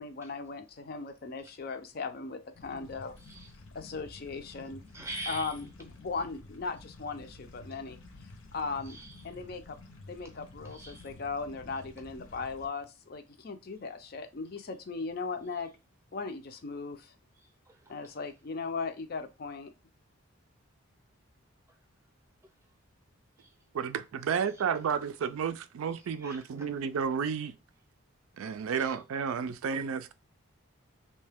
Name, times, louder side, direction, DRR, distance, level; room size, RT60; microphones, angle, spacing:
voice 1, 0.0-3.2 3.7-4.8 5.3-5.7 6.0-8.0 8.5-9.0 9.2-9.8 10.1-15.7 16.1-17.1 17.9-19.7, left 4 dB, 45° left, 0.4 m, -38 dB
sound 1, 2.5-12.7, left 2 dB, 80° left, 0.9 m, -51 dB
voice 2, 3.2-3.5 4.9-5.6 8.8-9.2 10.6-11.1 17.4-18.2 23.4-23.5 24.5-24.6 25.9-26.7 28.8-29.0, right 2 dB, 10° right, 0.6 m, -45 dB
voice 3, 23.7-27.5 28.4-30.1, right 6 dB, 80° right, 0.4 m, -32 dB
3.1 x 2.8 x 3.4 m
head